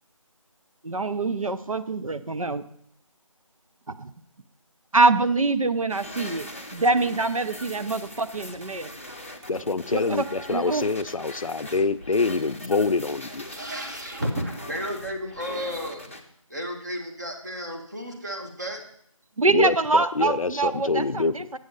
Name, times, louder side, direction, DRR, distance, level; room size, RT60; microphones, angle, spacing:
voice 1, 0.9-2.6 4.9-6.4 6.7-8.9 9.9-10.0 10.5-10.8 19.4-20.9, right 3 dB, 75° right, 11 dB, 0.7 m, -24 dB
sound 1, 5.9-16.2, left 1 dB, 25° left, 0.6 m, -41 dB
voice 2, 9.5-13.5 19.5-21.5, left 4 dB, 75° left, 14 dB, 0.5 m, -25 dB
voice 3, 13.5-16.1 16.5-18.8, equal, 30° right, 2 dB, 1.3 m, -32 dB
7.8 x 6.3 x 5.4 m, 0.67 s
figure-of-eight pair, 175°, 18 cm